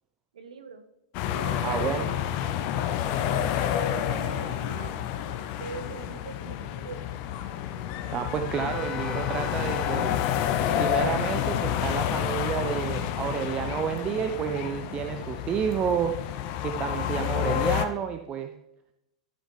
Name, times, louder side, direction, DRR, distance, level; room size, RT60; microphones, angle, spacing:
voice 1, 0.3-0.9 1.3-2.4 3.2-4.9 5.5-7.0, right 5 dB, 70° right, 10 dB, 1.0 m, -41 dB
sound 1, 1.1-17.9, left 10 dB, 45° left, 0.8 m, -29 dB
voice 2, 1.6-2.1 8.1-10.2 10.7-16.1 16.6-18.5, right 8 dB, 25° right, 6 dB, 0.6 m, -30 dB
Wind instrument woodwind instrument, 8.5-12.0, left 5 dB, 20° left, 0.5 m, -40 dB
13.5 x 6.4 x 3.3 m, 0.88 s
figure-of-eight pair, 95°, 4 cm